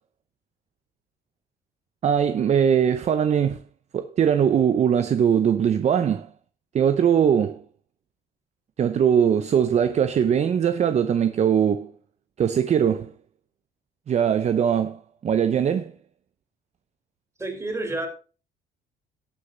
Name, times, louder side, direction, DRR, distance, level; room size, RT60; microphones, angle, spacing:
voice 1, 2.0-3.6 3.9-6.3 6.7-7.6 8.8-11.9 12.4-13.1 14.1-15.9, right 8 dB, 40° right, 0.8 m, -21 dB
voice 2, 17.4-18.1, right 2 dB, 15° right, 4.1 m, -29 dB
17.5 x 6.7 x 3.9 m
cardioid pair, 110°, 17 cm